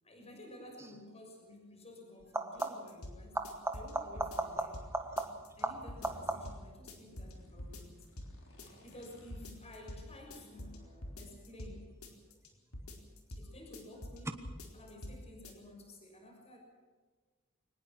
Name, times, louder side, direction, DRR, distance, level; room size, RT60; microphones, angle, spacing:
voice 1, 0.0-4.8 5.6-8.0 8.5-11.9 12.5-13.0 13.3-16.6, left 1 dB, 30° left, 2 dB, 6.2 m, -53 dB
sound 1, 0.8-1.0 2.2-3.0 3.3-6.7 12.2-12.7 14.3-14.4, right 2 dB, 15° right, 1.5 m, -38 dB
sound 2, 2.6-3.2 3.4-4.9 5.2-5.6 5.9-6.6 6.9-7.3 7.6-8.3 8.6-9.1 9.3-10.0 10.3-11.7 12.0-12.5 12.7-13.4 13.7-14.2 14.4-15.2 15.4-15.5, left 1 dB, 85° left, 4.4 m, -46 dB
sound 3, 4.3-10.6, equal, 65° left, 6.1 m, -59 dB
24.0 x 20.0 x 6.1 m, 1.4 s
head